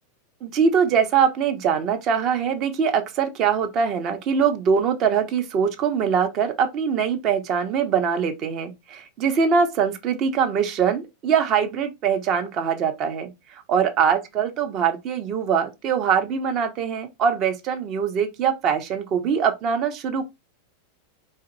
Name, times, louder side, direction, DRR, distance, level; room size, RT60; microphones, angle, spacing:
voice 1, 0.4-20.3, right 7 dB, 35° right, 0.7 m, -23 dB
3.8 x 3.2 x 2.6 m
figure-of-eight pair, 90°, 0 cm